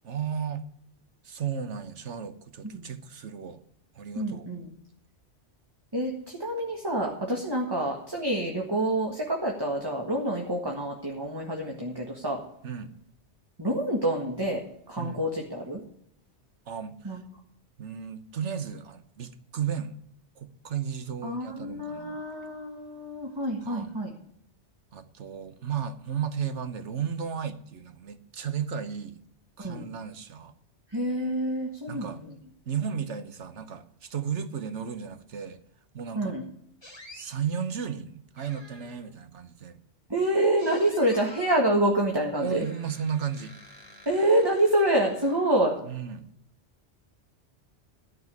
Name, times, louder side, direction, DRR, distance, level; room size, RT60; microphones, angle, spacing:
voice 1, 0.0-0.6 1.2-3.6 3.9-4.5 12.6-12.9 15.0-15.2 16.7-17.2 17.8-20.0 20.4-22.2 23.6-23.9 24.9-29.2 29.6-30.5 31.9-32.2 32.7-35.6 35.9-36.3 37.1-39.8 42.4-43.6 45.9-46.3, right 7 dB, 75° right, 11 dB, 1.3 m, -34 dB
voice 2, 4.2-4.7 5.9-12.4 13.6-14.6 14.9-15.8 17.0-17.2 21.2-24.1 29.6-29.9 30.9-32.3 36.2-36.5 40.1-42.6 44.1-45.8, right 1 dB, 20° right, -1 dB, 1.8 m, -27 dB
sound 1, 36.8-37.3 38.4-39.1 40.6-41.6 42.3-45.8, left 1 dB, 20° left, 2.7 m, -50 dB
13.5 x 5.5 x 9.5 m, 0.71 s
omnidirectional pair, 1.2 m